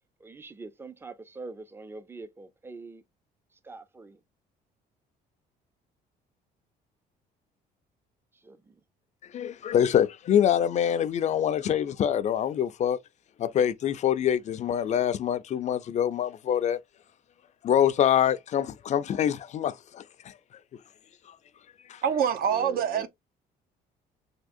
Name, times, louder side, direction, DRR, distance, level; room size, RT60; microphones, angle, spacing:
voice 1, 0.2-3.0 3.6-4.2 8.3-8.8 22.4-23.1, right 3 dB, 15° right, 0.4 m, -43 dB
voice 2, 9.3-13.0 13.4-16.8 17.6-20.4 21.9-22.0, left 9 dB, 45° left, 0.4 m, -25 dB
voice 3, 22.0-23.1, right 8 dB, 60° right, 0.6 m, -25 dB
3.5 x 2.8 x 2.5 m
cardioid pair, 110°, 17 cm